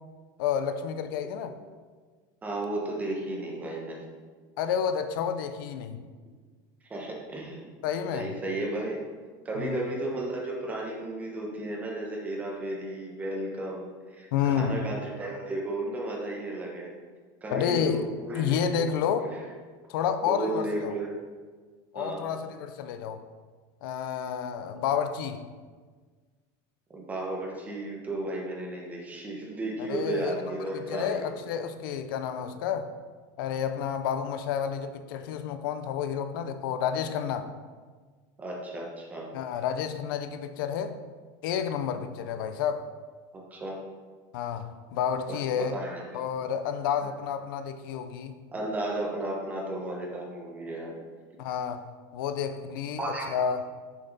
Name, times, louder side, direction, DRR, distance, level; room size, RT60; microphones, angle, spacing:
voice 1, 0.4-1.5 4.6-6.0 7.8-8.3 9.6-9.8 14.3-14.8 17.5-18.0 18.4-19.3 19.9-20.9 21.9-23.2 23.8-25.4 29.8-32.9 33.4-37.5 39.3-41.0 41.4-42.9 44.3-45.8 46.1-48.4 51.4-53.1 53.3-53.7, left 8 dB, 80° left, 8 dB, 0.6 m, -30 dB
voice 2, 2.4-4.1 6.9-7.6 8.1-9.0 9.4-16.9 17.4-18.9 19.2-19.4 20.2-21.1 21.9-22.3 24.7-24.8 26.9-31.4 38.4-39.3 41.9-42.1 43.3-43.8 45.3-46.1 47.0-47.1 48.5-51.0 53.0-53.4, right 2 dB, 15° right, -1 dB, 1.1 m, -34 dB
6.9 x 5.6 x 4.1 m, 1.5 s
supercardioid pair, 160°, 11 cm